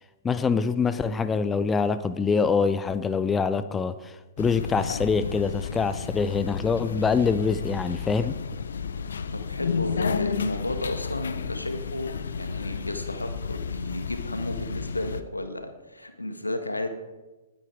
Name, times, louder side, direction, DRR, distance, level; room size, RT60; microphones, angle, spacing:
voice 1, 0.2-8.4, left 5 dB, 15° left, 13 dB, 0.6 m, -25 dB
sound 1, 4.4-15.2, left 6 dB, 65° left, 0.8 m, -32 dB
voice 2, 9.3-16.9, left 1 dB, 85° left, 7 dB, 1.7 m, -33 dB
20.0 x 9.3 x 4.8 m, 1.2 s
figure-of-eight pair, 115°, 0 cm